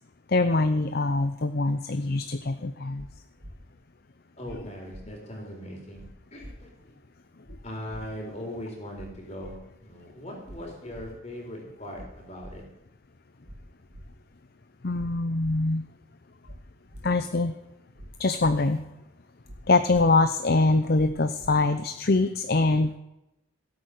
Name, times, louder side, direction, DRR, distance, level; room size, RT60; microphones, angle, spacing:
voice 1, 0.3-3.1 14.8-15.8 17.0-17.5 18.2-18.8 19.7-23.0, left 3 dB, 45° left, 10 dB, 0.6 m, -23 dB
sound 1, 2.9-3.1 3.4-3.5 4.4-4.6 4.9-5.0 5.9-6.1 6.4-6.5 7.4-7.6 7.9-8.0 8.9-9.1 9.4-9.5 10.4-10.6 10.9-11.0 11.9-12.1 12.4-12.5 13.4-13.6 13.9-14.0 14.9-15.1 15.4-15.5 16.4-16.6 16.9-17.0 17.9-18.1 18.4-18.5 19.4-19.6 19.9-20.0 20.9-21.1 21.4-21.5, equal, 55° right, 2.2 m, -44 dB
voice 2, 4.4-6.0 6.3-6.9 7.6-12.6, equal, 30° left, 0 dB, 4.1 m, -40 dB
16.5 x 8.7 x 6.6 m, 0.91 s
head